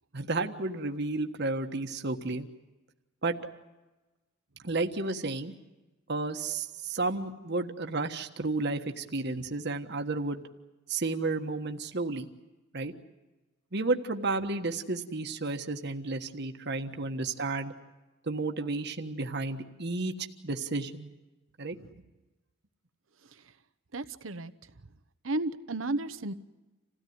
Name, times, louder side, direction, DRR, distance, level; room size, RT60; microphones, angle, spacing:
voice 1, 0.1-2.5 3.2-3.3 4.6-5.5 6.1-10.4 10.9-12.3 12.7-12.9 13.7-17.7 18.3-20.1 20.4-21.1 21.6-21.8, right 3 dB, 60° right, 5 dB, 1.5 m, -32 dB
voice 2, 23.2-23.5 23.9-24.5 25.2-26.3, right 2 dB, 80° right, 12 dB, 1.0 m, -34 dB
27.5 x 16.5 x 9.5 m, 1.2 s
head